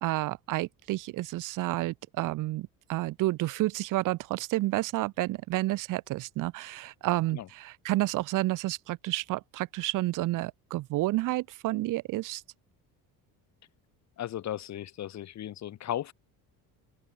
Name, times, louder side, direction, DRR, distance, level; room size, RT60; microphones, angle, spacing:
voice 1, 0.0-12.4, right 18 dB, 55° right, 0.8 m, -30 dB
voice 2, 14.2-16.1, left 11 dB, 45° left, 1.9 m, -36 dB
open air
cardioid pair, 140°, 37 cm